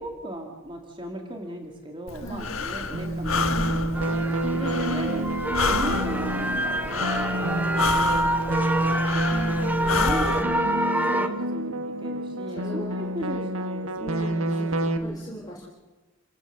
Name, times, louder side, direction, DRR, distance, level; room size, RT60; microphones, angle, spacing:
voice 1, 0.0-5.3 5.6-8.4 9.9-15.3, right 1 dB, 25° right, 2 dB, 2.4 m, -37 dB
Breathing, 2.1-10.4, left 4 dB, 90° left, 1.4 m, -30 dB
voice 2, 2.2-2.6 2.9-3.7 9.3-9.8 12.5-13.5 14.0-15.6, right 1 dB, 20° left, -3 dB, 3.7 m, -39 dB
sound 1, 2.9-15.0, right 1 dB, 90° right, 1.6 m, -28 dB
sound 2, 3.9-11.3, right 1 dB, 10° right, 1.1 m, -28 dB
28.5 x 15.0 x 6.9 m, 1.2 s
head